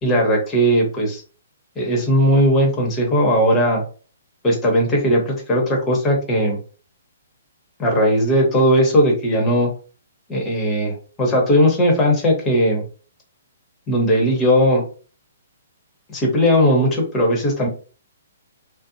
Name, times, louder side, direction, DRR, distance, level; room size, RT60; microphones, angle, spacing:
voice 1, 0.0-1.2 1.8-3.8 4.4-6.6 7.8-9.7 10.3-12.8 13.9-14.8 16.1-17.7, equal, 20° left, 0 dB, 1.0 m, -18 dB
2.6 x 2.1 x 2.6 m, 0.39 s
hypercardioid pair, 135°, 0 cm